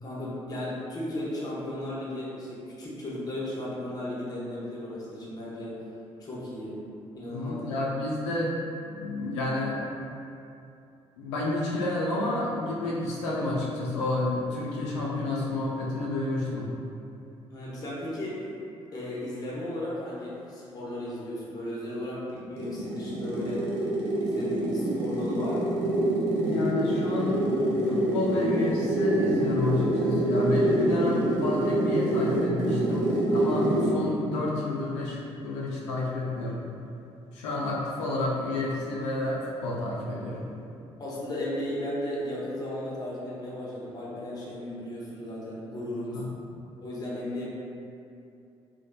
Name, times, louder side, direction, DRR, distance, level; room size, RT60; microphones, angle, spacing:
voice 1, 0.0-5.8 6.2-6.8 7.2-7.9 17.5-18.4 18.9-23.7 24.2-25.8 41.0-46.2 46.8-47.4, left 1 dB, 25° left, -7 dB, 0.7 m, -35 dB
voice 2, 7.3-8.5 8.8-9.8 11.2-16.7 26.5-36.7 37.3-40.5 46.1-46.2, left 2 dB, 75° left, -5 dB, 0.4 m, -30 dB
sound 1, 22.3-34.1, right 1 dB, 70° right, 0.4 m, -26 dB
3.0 x 2.0 x 2.2 m, 2.6 s
figure-of-eight pair, 45°, 15 cm